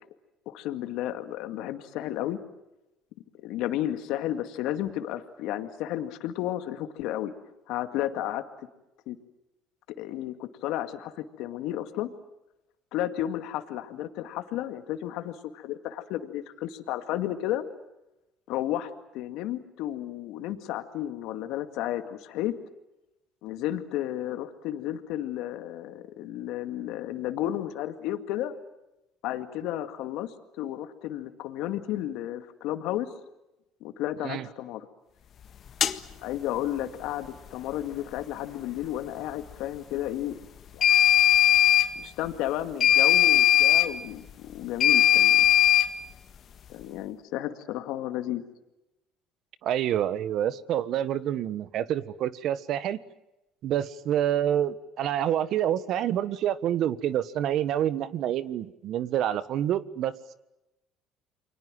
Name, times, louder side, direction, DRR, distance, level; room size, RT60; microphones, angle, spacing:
voice 1, 0.5-2.4 3.4-7.3 7.7-8.4 9.1-9.2 10.0-12.1 12.9-17.6 18.5-22.5 23.4-28.6 29.2-33.1 33.8-34.9 36.2-40.4 40.7-40.9 42.0-45.5 46.7-48.4, left 13 dB, 75° left, 8 dB, 2.1 m, -32 dB
sound 1, 35.8-35.9 40.8-41.9 42.8-43.9 44.8-45.9, left 12 dB, 50° left, 1.6 m, -19 dB
voice 2, 49.6-53.0 53.6-60.3, right 11 dB, 60° right, 15 dB, 1.4 m, -27 dB
29.5 x 23.5 x 7.7 m, 0.93 s
supercardioid pair, 80°, 0 cm